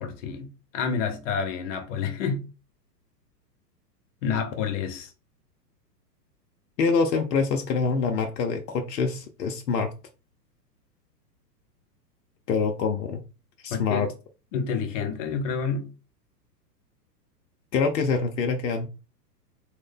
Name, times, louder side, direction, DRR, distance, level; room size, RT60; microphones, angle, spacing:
voice 1, 0.0-2.5 4.2-5.1 13.7-14.1 14.5-15.9, left 6 dB, 50° left, 1.0 m, -29 dB
voice 2, 6.8-9.9 12.5-13.2 13.6-14.1 17.7-18.9, left 5 dB, 75° left, 0.7 m, -25 dB
3.2 x 2.1 x 3.5 m
hypercardioid pair, 115°, 50 cm